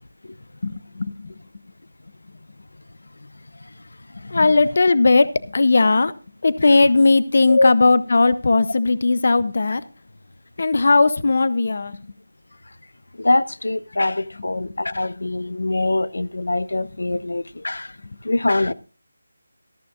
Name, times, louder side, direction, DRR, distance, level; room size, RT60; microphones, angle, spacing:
voice 1, 0.6-1.3 4.2-6.1 6.4-9.8 10.6-12.0 14.5-14.7 17.1-17.2, left 3 dB, 40° left, 0.7 m, -18 dB
voice 2, 13.2-17.9 18.2-18.7, left 2 dB, 85° left, 0.7 m, -23 dB
14.0 x 13.5 x 2.4 m
figure-of-eight pair, 175°, 0 cm